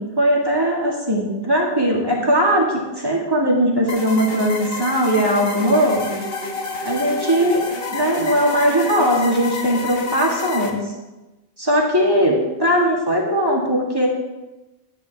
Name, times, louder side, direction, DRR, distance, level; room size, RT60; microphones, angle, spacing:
voice 1, 0.0-6.2 6.9-7.6 7.9-10.8 11.6-14.1, equal, 20° right, -3 dB, 2.1 m, -19 dB
sound 1, 3.9-10.7, left 3 dB, 65° left, 1.4 m, -29 dB
11.5 x 9.6 x 3.5 m, 1.1 s
omnidirectional pair, 1.0 m